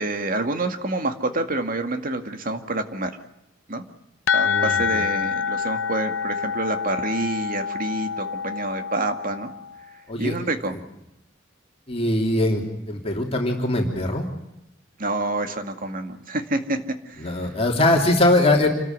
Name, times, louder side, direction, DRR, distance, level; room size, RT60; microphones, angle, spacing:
voice 1, 0.0-3.1 3.7-3.8 4.3-9.5 10.2-10.7 15.0-16.8 17.1-17.3, right 2 dB, 45° right, 7 dB, 2.1 m, -27 dB
sound 1, 4.3-9.9, left 6 dB, 90° left, 0.9 m, -26 dB
voice 2, 4.4-5.0 10.1-10.4 10.7-10.8 11.9-14.3 17.2-18.7, left 1 dB, 30° left, 1 dB, 3.1 m, -22 dB
28.0 x 13.5 x 9.5 m, 0.89 s
head